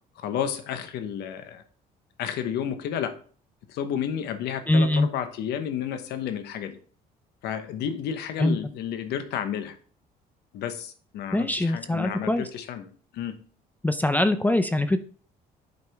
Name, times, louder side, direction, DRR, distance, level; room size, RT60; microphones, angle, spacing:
voice 1, 0.2-1.6 2.2-3.1 3.7-6.8 7.4-9.8 10.5-13.3, left 9 dB, 80° left, 9 dB, 1.0 m, -31 dB
voice 2, 4.7-5.1 8.4-8.6 11.3-12.4 13.8-15.0, left 1 dB, 10° left, 10 dB, 0.5 m, -23 dB
8.2 x 4.9 x 3.4 m, 0.43 s
cardioid pair, 110°, 17 cm